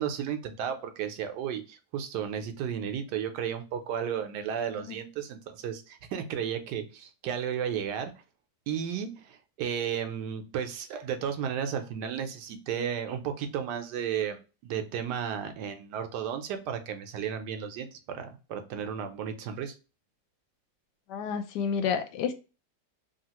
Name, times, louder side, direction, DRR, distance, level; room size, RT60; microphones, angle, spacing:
voice 1, 0.0-8.1 8.7-19.7, right 8 dB, 80° right, 1.2 m, -33 dB
voice 2, 21.1-22.3, left 7 dB, 80° left, 1.2 m, -30 dB
3.4 x 2.4 x 2.8 m
omnidirectional pair, 1.8 m